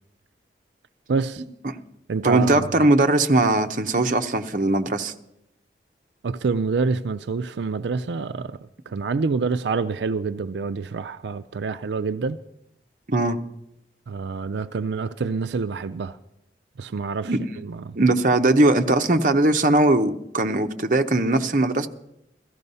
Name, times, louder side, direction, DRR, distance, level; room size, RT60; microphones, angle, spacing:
voice 1, 1.1-1.4 2.1-2.9 6.2-12.4 14.1-16.2 16.8-17.3 17.6-18.0, right 4 dB, 80° right, 0.4 m, -27 dB
voice 2, 2.2-5.1 13.1-13.4 17.2-17.4 17.9-21.9, right 2 dB, 45° right, 0.8 m, -20 dB
16.0 x 14.0 x 5.5 m
head